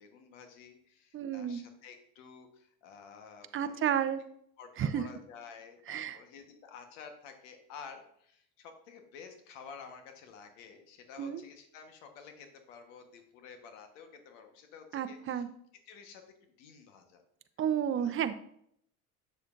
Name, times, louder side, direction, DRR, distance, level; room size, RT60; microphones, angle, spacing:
voice 1, 0.0-4.0 4.6-15.4 15.9-17.2 17.9-18.1, left 6 dB, 85° left, 6 dB, 1.3 m, -51 dB
voice 2, 1.1-1.6 3.5-4.2 4.8-5.0 5.9-6.2 11.2-11.4 14.9-15.5 17.6-18.4, right 9 dB, 35° right, 10 dB, 0.6 m, -31 dB
7.8 x 7.1 x 2.6 m, 0.69 s
supercardioid pair, 95°, 36 cm